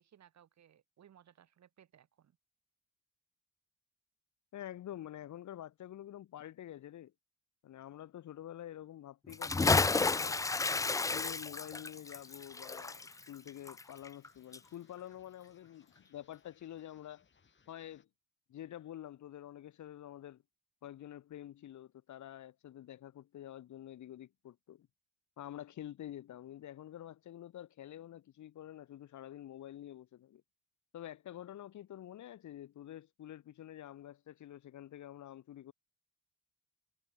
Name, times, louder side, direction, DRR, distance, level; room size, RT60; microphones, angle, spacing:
voice 1, 0.0-2.4, right 10 dB, 65° right, 5.1 m, -63 dB
voice 2, 4.5-7.1 7.6-10.5 11.1-17.2 17.7-18.1 18.5-20.4 20.8-24.9 25.4-30.4 30.9-35.7, left 12 dB, 70° left, 3.1 m, -48 dB
Bathtub (filling or washing) / Splash splatter, 9.3-14.3 14.5-14.6, left 3 dB, 10° left, 0.3 m, -31 dB
sound 1, 10.7-18.1, left 5 dB, 40° left, 7.6 m, -69 dB
cardioid pair, 90°, 30 cm